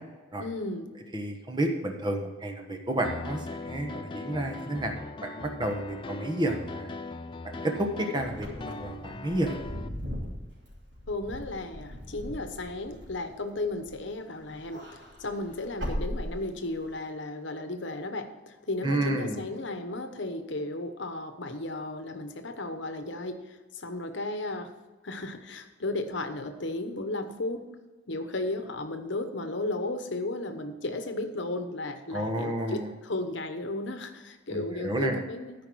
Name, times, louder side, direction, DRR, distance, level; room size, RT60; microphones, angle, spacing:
voice 1, 0.4-0.9 11.1-24.7 25.0-27.6 28.1-35.5, left 2 dB, 65° left, 7 dB, 1.0 m, -34 dB
voice 2, 1.1-6.9 7.4-9.6 18.8-19.4 32.1-32.9 34.5-35.2, right 1 dB, 20° right, 3 dB, 1.2 m, -31 dB
Piano, 3.0-9.9, left 3 dB, 25° left, 0.4 m, -40 dB
Wind / Car, 8.3-14.1 14.5-16.9, equal, 65° right, 3.4 m, -39 dB
13.5 x 5.2 x 6.2 m, 1.3 s
head